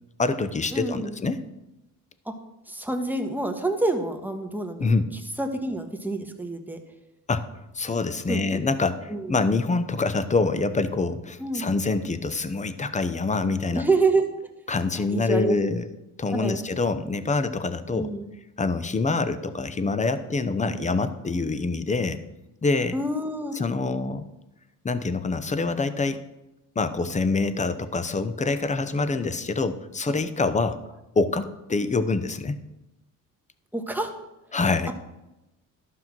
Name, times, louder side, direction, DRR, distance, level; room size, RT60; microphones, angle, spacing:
voice 1, 0.2-1.4 4.8-5.1 7.3-7.5 7.7-13.8 14.7-15.9 16.2-18.1 18.6-22.2 22.6-23.0 23.5-24.3 24.8-26.2 26.8-30.8 31.1-32.6 34.5-34.9, left 3 dB, 20° left, 12 dB, 0.8 m, -25 dB
voice 2, 0.7-1.1 2.2-2.3 2.7-4.9 5.4-6.8 8.3-8.6 9.1-9.4 11.4-11.7 13.7-14.3 14.9-15.6 16.3-16.6 17.9-18.2 20.6-20.8 22.9-23.6 33.7-34.1, right 2 dB, 5° right, 4 dB, 1.4 m, -27 dB
12.0 x 5.7 x 6.2 m, 0.96 s
cardioid pair, 95°, 35 cm